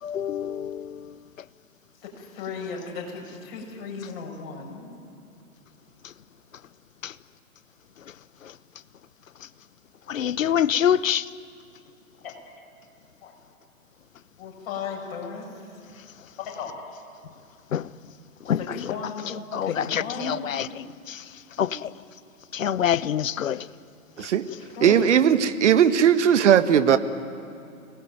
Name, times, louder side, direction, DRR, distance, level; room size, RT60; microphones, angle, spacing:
voice 1, 0.0-1.2 6.0-6.1 7.0-7.1 8.4-8.5 10.1-11.3 17.7-17.9 18.4-21.3 21.6-21.9 22.5-23.7 24.2-24.3, left 9 dB, 60° left, 1.0 m, -26 dB
voice 2, 2.0-4.9 12.2-12.3 13.2-13.3 14.4-15.8 16.4-16.7 18.4-20.5 24.8-25.1, left 5 dB, 40° left, 8.0 m, -35 dB
voice 3, 24.8-27.0, right 8 dB, 50° right, 1.6 m, -18 dB
29.5 x 20.0 x 9.3 m
figure-of-eight pair, 135°, 44 cm